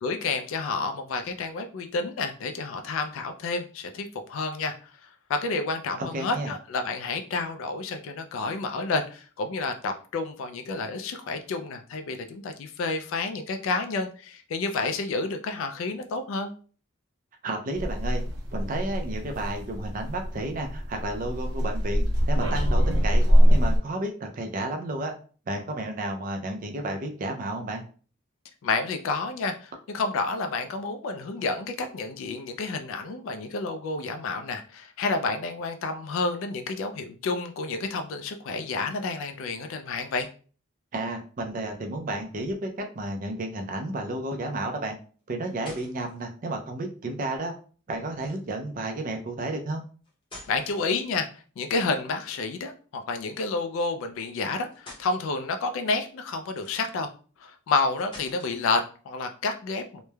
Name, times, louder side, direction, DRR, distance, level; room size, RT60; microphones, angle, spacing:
voice 1, 0.0-16.5 28.6-40.3 50.5-51.3 51.6-57.1 57.4-60.0, left 3 dB, 70° left, 6 dB, 0.3 m, -30 dB
voice 2, 6.0-6.5 17.4-18.2 18.5-23.2 23.5-25.1 25.5-27.8 40.9-45.0 45.3-47.5 47.9-49.8, right 2 dB, 40° right, 4 dB, 0.4 m, -32 dB
sound 1, 17.7-23.8, equal, 65° right, 0.8 m, -23 dB
sound 2, 45.2-46.2 48.1-48.6 50.0-51.4 53.3-53.5 54.2-54.3 54.7-55.1 56.4-57.1 58.0-58.8, left 2 dB, 25° left, 0.7 m, -48 dB
3.0 x 2.0 x 2.2 m, 0.40 s
head